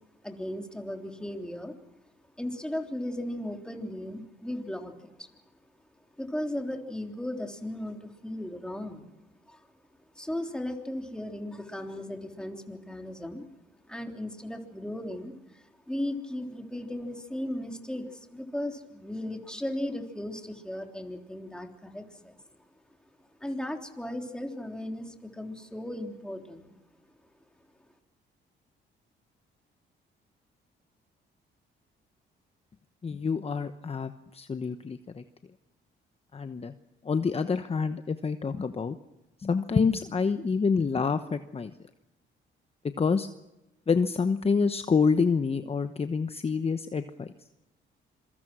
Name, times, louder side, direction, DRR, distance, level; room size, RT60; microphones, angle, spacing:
voice 1, 0.2-1.8 2.4-5.4 6.2-9.1 9.5-9.6 10.2-13.5 13.9-22.4 23.4-26.8, left 1 dB, 5° left, 3 dB, 3.5 m, -36 dB
voice 2, 33.0-35.2 36.3-36.7 37.0-39.0 39.4-41.7 43.0-43.3 43.9-47.3, left 5 dB, 30° left, 9 dB, 1.0 m, -27 dB
26.5 x 23.0 x 6.2 m, 0.99 s
cardioid pair, 90°, 20 cm